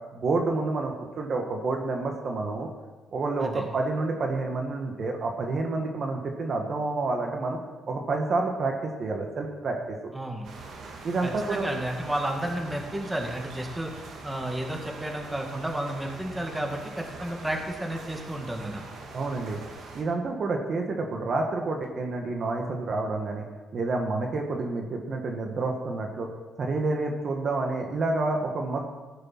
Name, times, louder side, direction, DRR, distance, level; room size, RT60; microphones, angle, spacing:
voice 1, 0.1-2.7 3.1-7.6 7.9-10.1 11.0-11.7 19.1-19.6 20.0-23.4 23.7-26.3 26.6-28.8, right 3 dB, 50° right, 2 dB, 1.6 m, -29 dB
voice 2, 10.1-10.5 11.2-13.9 14.2-18.9, right 1 dB, 10° right, 1 dB, 2.1 m, -32 dB
sound 1, 10.4-20.0, right 3 dB, 75° right, 2.4 m, -43 dB
15.5 x 6.6 x 6.1 m, 1.3 s
cardioid pair, 90°, 0 cm